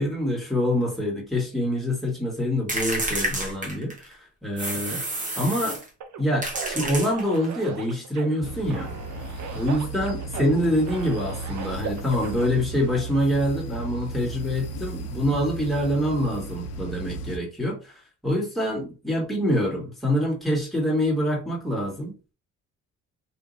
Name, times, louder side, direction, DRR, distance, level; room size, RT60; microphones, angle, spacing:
voice 1, 0.0-5.0 5.4-5.8 6.2-8.9 9.5-17.8 18.2-22.3, equal, ahead, 1.8 m, -25 dB
sound 1, 2.7-4.1 4.6-5.9 6.4-7.5, right 1 dB, 25° right, 1.3 m, -29 dB
sound 2, 6.0-12.5, right 6 dB, 65° right, 0.7 m, -39 dB
sound 3, 8.4-17.4, right 2 dB, 55° left, 0.6 m, -35 dB
3.2 x 2.9 x 2.7 m
cardioid pair, 90°, 30 cm